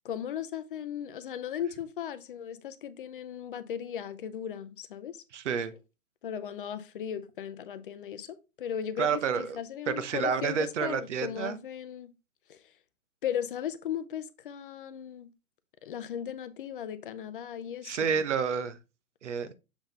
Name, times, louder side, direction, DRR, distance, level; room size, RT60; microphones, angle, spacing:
voice 1, 0.0-5.2 6.2-12.1 12.5-12.6 13.2-15.3 15.8-18.2, left 9 dB, 40° left, 0.6 m, -37 dB
voice 2, 5.3-5.7 9.0-9.6 9.9-11.6 17.8-18.8 19.2-19.5, right 6 dB, 55° right, 1.0 m, -29 dB
7.0 x 3.8 x 3.9 m
figure-of-eight pair, 125°, 42 cm